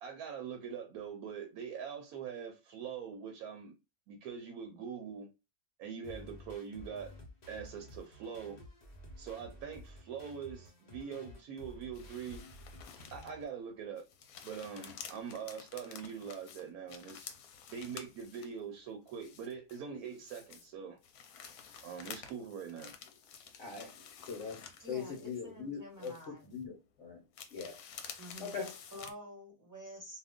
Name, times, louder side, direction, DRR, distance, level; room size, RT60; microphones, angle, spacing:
voice 1, 0.0-3.8 4.1-5.3 5.8-7.1 7.5-8.6 9.2-12.4 13.1-14.1 14.4-17.3 17.7-21.0 21.8-22.9, right 7 dB, 85° right, 1.0 m, -43 dB
sound 1, 6.0-13.4, left 1 dB, 40° left, 0.7 m, -52 dB
sound 2, 11.9-13.5 13.9-18.6 19.1-20.7 21.0-25.7 26.0-26.6 27.3-29.1, left 7 dB, 80° left, 1.0 m, -51 dB
voice 2, 23.6-27.2 27.5-27.8 28.4-28.7, left 6 dB, 60° left, 1.1 m, -42 dB
voice 3, 24.8-26.6 28.2-30.2, equal, 15° right, 1.1 m, -49 dB
2.5 x 2.4 x 3.5 m
omnidirectional pair, 1.5 m